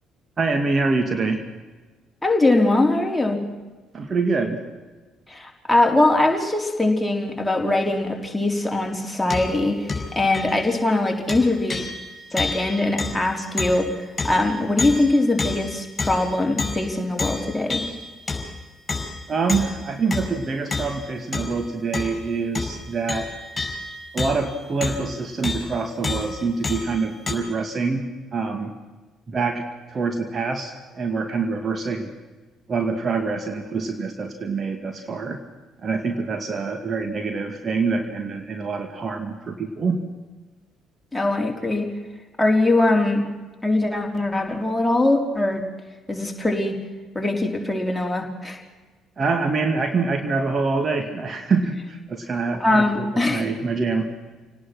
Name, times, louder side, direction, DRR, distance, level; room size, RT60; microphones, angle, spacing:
voice 1, 0.4-1.5 3.9-4.6 19.3-23.3 24.1-28.8 29.3-32.1 32.7-35.4 35.8-40.0 49.2-54.1, right 4 dB, 35° right, 5 dB, 2.1 m, -25 dB
voice 2, 2.2-3.4 5.3-9.8 10.2-11.8 12.3-13.9 14.2-17.8 41.1-41.9 42.4-43.3 43.6-45.6 46.1-46.8 47.1-48.6 52.6-53.4, left 2 dB, 5° left, 1 dB, 4.1 m, -21 dB
sound 1, 9.3-9.6 9.9-10.7 11.3-16.9 17.2-18.6 18.9-21.6 21.9-22.3 22.5-25.2 25.4-25.7 26.0-27.3, left 3 dB, 25° left, 5.4 m, -30 dB
28.0 x 18.5 x 6.1 m, 1.3 s
figure-of-eight pair, 45°, 0 cm